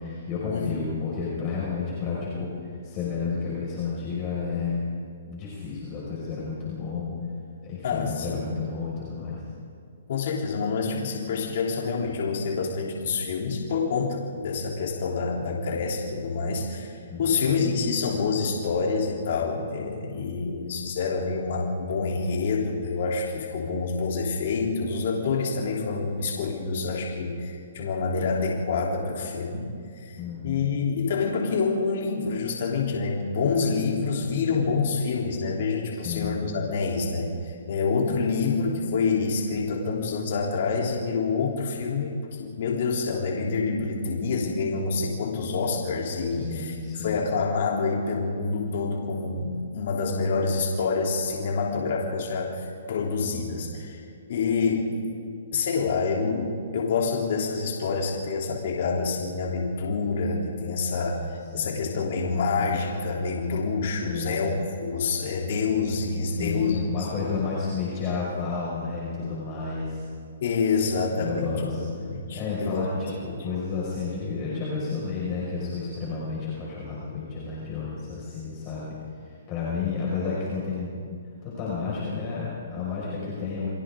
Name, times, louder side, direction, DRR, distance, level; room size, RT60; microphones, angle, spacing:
voice 1, 0.0-4.8 5.2-7.1 7.6-9.4 17.1-17.4 30.2-30.6 35.9-36.4 46.3-47.2 61.1-61.8 64.0-64.4 66.3-70.0 71.1-72.0 72.3-78.9 79.2-81.0 81.4-83.7, left 5 dB, 30° left, -6 dB, 5.7 m, -31 dB
voice 2, 7.8-8.5 10.1-54.9 55.5-61.2 61.5-67.4 70.4-72.9, left 4 dB, 55° left, -2 dB, 3.4 m, -27 dB
30.0 x 23.0 x 3.8 m, 2.3 s
hypercardioid pair, 150°, 0 cm